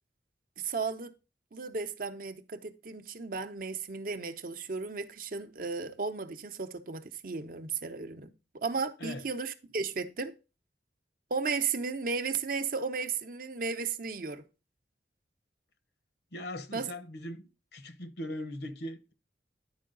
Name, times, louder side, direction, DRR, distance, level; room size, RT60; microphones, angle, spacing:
voice 1, 0.6-1.1 1.5-10.4 11.3-14.4 16.7-16.9, right 4 dB, 50° right, 0.6 m, -34 dB
voice 2, 16.3-17.4 17.7-19.1, left 1 dB, 65° left, 0.8 m, -40 dB
10.5 x 4.6 x 3.8 m
head